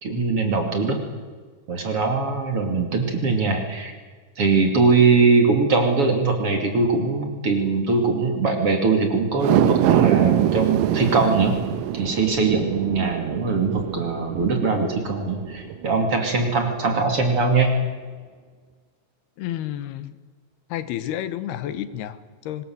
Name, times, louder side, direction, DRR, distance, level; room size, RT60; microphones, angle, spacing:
voice 1, 0.0-1.0 1.7-3.9 4.4-11.6 11.9-17.8, right 4 dB, 40° right, 4 dB, 3.2 m, -21 dB
sound 1, 9.3-15.8 16.2-16.3, right 12 dB, 70° right, 2.3 m, -24 dB
voice 2, 19.4-20.1 20.7-22.6, left 11 dB, 90° left, 12 dB, 3.2 m, -30 dB
24.0 x 20.5 x 7.9 m, 1.5 s
omnidirectional pair, 4.5 m